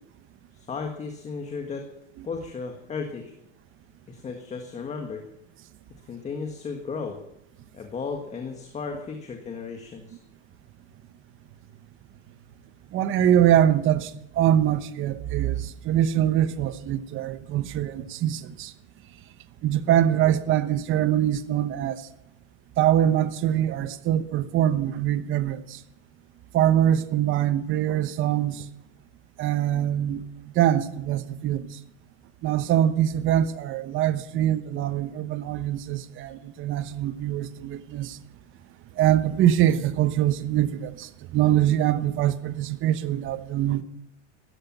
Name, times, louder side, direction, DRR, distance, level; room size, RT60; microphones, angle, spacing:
voice 1, 0.5-1.9 2.2-3.3 4.1-5.2 6.1-7.2 7.7-10.2, left 5 dB, 20° left, 1.6 m, -34 dB
voice 2, 12.9-14.1 14.4-18.7 19.6-22.0 22.8-25.8 26.5-28.7 29.4-30.2 30.5-31.7 32.4-38.2 39.0-43.8, right 11 dB, 35° right, 1.1 m, -23 dB
15.0 x 14.0 x 6.0 m
supercardioid pair, 150°, 36 cm